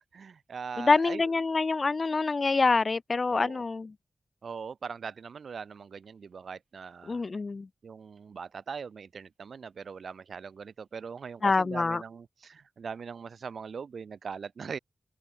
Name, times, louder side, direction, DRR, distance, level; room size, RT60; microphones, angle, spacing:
voice 1, 0.0-1.3 3.3-3.6 4.4-7.2 7.8-14.8, right 6 dB, 70° right, 3.4 m, -41 dB
voice 2, 0.8-3.9 7.1-7.7 11.4-12.0, left 3 dB, 40° left, 0.6 m, -26 dB
wide cardioid pair, 120°, 0 cm